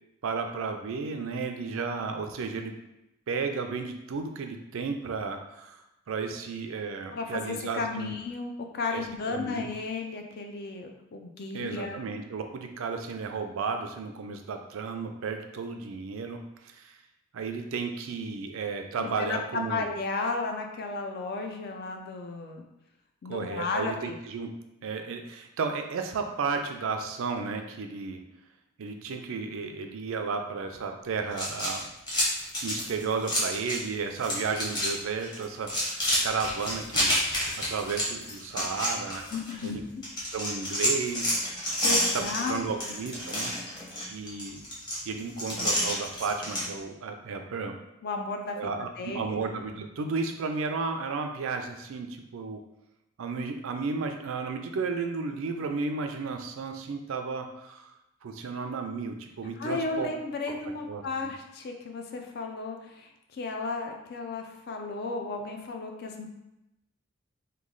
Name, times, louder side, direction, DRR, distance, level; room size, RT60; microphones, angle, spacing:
voice 1, 0.2-2.7 3.3-5.8 6.1-8.1 8.9-9.7 11.5-17.0 17.3-19.8 23.3-24.5 24.8-28.2 28.8-31.9 32.6-37.1 37.6-39.2 39.6-39.8 40.3-41.4 42.1-43.5 44.1-44.6 45.1-47.8 48.6-52.6 53.2-57.9 58.2-60.1 60.9-61.3, right 4 dB, 65° right, 5 dB, 0.4 m, -33 dB
voice 2, 7.1-12.0 19.0-22.6 23.2-24.2 39.3-40.0 41.8-42.6 42.9-43.0 48.0-49.4 59.6-66.3, left 3 dB, 50° left, 3 dB, 0.4 m, -34 dB
sound 1, 31.3-33.9 34.2-34.9 35.2-39.7 40.0-46.7, equal, 20° left, 0.8 m, -29 dB
3.1 x 2.3 x 3.7 m, 0.90 s
head